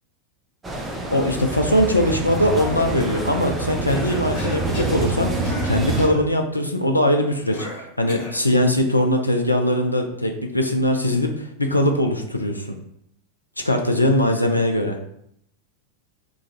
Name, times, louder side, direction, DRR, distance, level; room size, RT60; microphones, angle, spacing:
sound 1, 0.6-6.1, right 2 dB, 15° right, 0.6 m, -26 dB
voice 1, 1.1-7.7 8.0-12.8 13.6-15.0, left 1 dB, 85° left, 4 dB, 0.4 m, -21 dB
Cough, 3.9-5.0 5.4-5.7 6.0-6.2 7.5-8.4, left 1 dB, 50° left, 1.3 m, -35 dB
3.1 x 2.5 x 3.9 m, 0.71 s
figure-of-eight pair, 90°, 0 cm